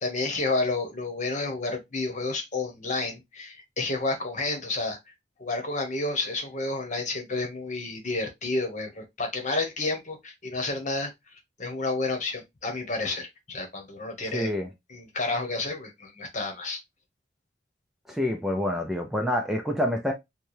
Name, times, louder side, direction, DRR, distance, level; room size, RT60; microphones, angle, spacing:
voice 1, 0.0-5.0 5.4-11.1 11.6-14.5 14.9-16.8, left 3 dB, 45° left, 1.1 m, -30 dB
voice 2, 14.3-14.7 18.1-20.1, left 1 dB, ahead, 0.4 m, -27 dB
4.4 x 2.2 x 3.1 m
head